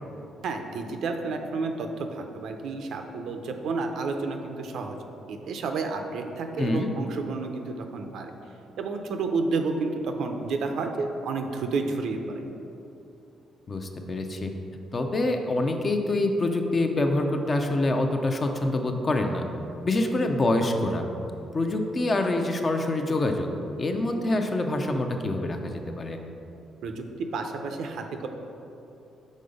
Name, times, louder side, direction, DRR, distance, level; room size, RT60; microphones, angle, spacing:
voice 1, 0.4-5.0 5.3-8.3 8.8-12.4 26.8-28.3, right 4 dB, 75° right, 5 dB, 0.5 m, -30 dB
voice 2, 6.6-6.9 13.7-14.5 14.9-19.4 19.8-21.0 21.5-23.5 23.8-26.2, left 2 dB, 35° left, 4 dB, 0.6 m, -26 dB
5.3 x 3.8 x 5.2 m, 2.8 s
cardioid pair, 90°, 0 cm